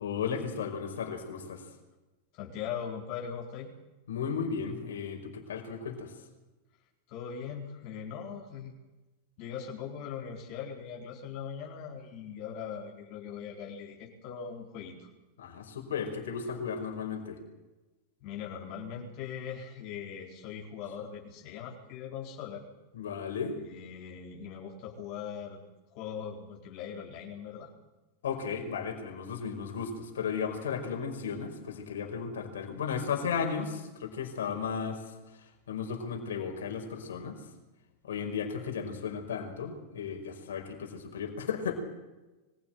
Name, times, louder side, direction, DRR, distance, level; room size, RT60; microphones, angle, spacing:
voice 1, 0.0-1.6 4.1-6.1 15.4-17.4 22.9-23.6 28.2-35.0 35.7-37.4 38.0-41.8, left 6 dB, 80° left, 2 dB, 5.4 m, -35 dB
voice 2, 2.3-3.7 7.1-8.7 9.4-15.1 18.2-22.6 23.6-25.6 25.9-27.7, left 7 dB, 55° left, -2 dB, 4.4 m, -40 dB
24.0 x 16.0 x 9.4 m, 1.1 s
hypercardioid pair, 100°, 0 cm